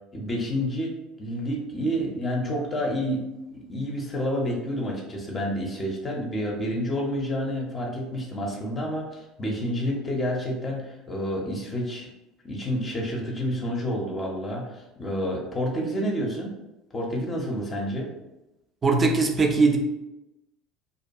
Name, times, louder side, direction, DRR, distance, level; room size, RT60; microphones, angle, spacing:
voice 1, 0.1-3.2 3.5-12.1 12.4-16.5 16.9-18.1, equal, 30° left, -1 dB, 0.6 m, -29 dB
voice 2, 18.8-19.8, right 3 dB, 25° right, 3 dB, 0.4 m, -20 dB
2.5 x 2.2 x 2.6 m, 0.95 s
figure-of-eight pair, 65°, 0 cm